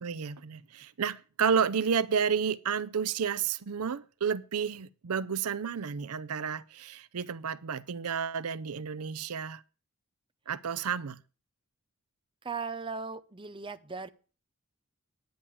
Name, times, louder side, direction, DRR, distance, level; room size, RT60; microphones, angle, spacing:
voice 1, 0.0-9.6 10.5-11.2, right 6 dB, 85° right, 0.6 m, -31 dB
voice 2, 12.4-14.1, right 5 dB, 25° right, 0.7 m, -37 dB
10.5 x 8.4 x 7.0 m
head